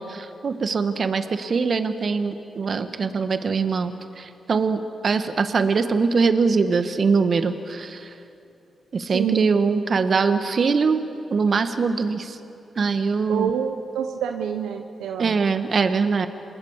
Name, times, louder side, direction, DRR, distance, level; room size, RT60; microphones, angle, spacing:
voice 1, 0.0-8.1 8.9-11.0 11.3-12.4 12.8-13.5 15.2-16.3, right 5 dB, 55° right, 9 dB, 1.5 m, -22 dB
voice 2, 9.1-9.5 13.3-15.4, right 8 dB, 90° right, 5 dB, 0.9 m, -27 dB
27.5 x 20.0 x 7.4 m, 2.7 s
supercardioid pair, 50°, 0 cm